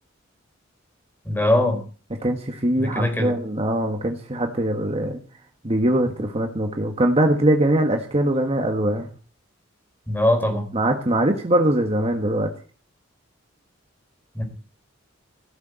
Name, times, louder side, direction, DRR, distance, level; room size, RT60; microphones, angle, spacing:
voice 1, 1.2-1.8 2.8-3.3 10.1-10.7 14.3-14.4, left 1 dB, 10° left, 4.4 m, -21 dB
voice 2, 2.2-5.2 5.6-9.1 10.7-12.5, right 1 dB, 30° right, 1.6 m, -22 dB
16.0 x 7.1 x 8.2 m
head